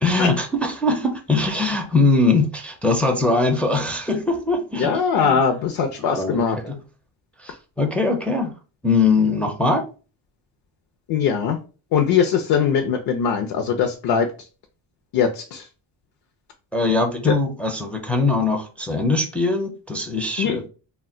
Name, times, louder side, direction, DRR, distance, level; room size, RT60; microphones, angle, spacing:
voice 1, 0.0-5.4 6.0-6.8 7.4-8.5 8.8-9.8 16.7-20.7, left 3 dB, 5° left, 2 dB, 0.4 m, -21 dB
voice 2, 4.8-6.6 11.1-11.6 11.9-14.3 15.1-15.6 17.3-17.4 20.4-20.6, left 7 dB, 60° left, 4 dB, 0.5 m, -21 dB
2.2 x 2.1 x 3.6 m, 0.35 s
cardioid pair, 100°, 43 cm